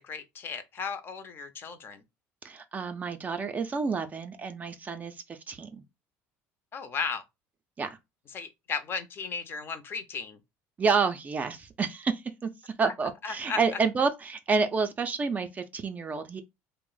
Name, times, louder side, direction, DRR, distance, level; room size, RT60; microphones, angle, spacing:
voice 1, 0.0-2.0 6.7-7.2 8.3-10.4 12.8-12.9 13.2-13.6, left 5 dB, 40° left, 0.5 m, -35 dB
voice 2, 2.4-5.8 7.8-7.9 10.8-16.4, right 5 dB, 25° right, 0.4 m, -29 dB
2.5 x 2.0 x 3.7 m
cardioid pair, 120°, 6 cm